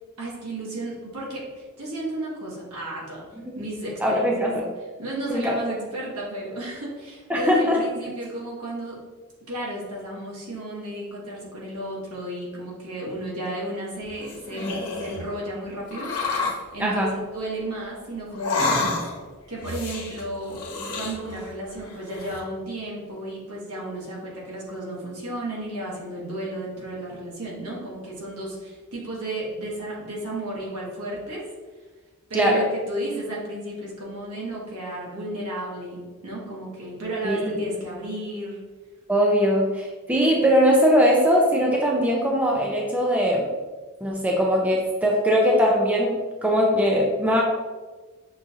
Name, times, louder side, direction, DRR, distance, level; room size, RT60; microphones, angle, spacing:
voice 1, 0.2-3.2 3.5-4.6 5.0-9.0 9.5-19.0 19.5-20.6 20.9-31.4 32.3-38.6, right 1 dB, 70° right, -4 dB, 1.3 m, -33 dB
voice 2, 4.0-4.6 5.3-5.6 7.3-7.8 16.8-17.2 32.3-32.6 37.2-37.6 39.1-43.5 44.0-47.4, equal, 5° right, -2 dB, 0.4 m, -21 dB
sound 1, 14.1-15.2 15.9-16.6 18.3-19.3 19.6-21.5 21.8-22.4, left 3 dB, 85° left, 1.0 m, -29 dB
6.1 x 2.4 x 2.7 m, 1.3 s
head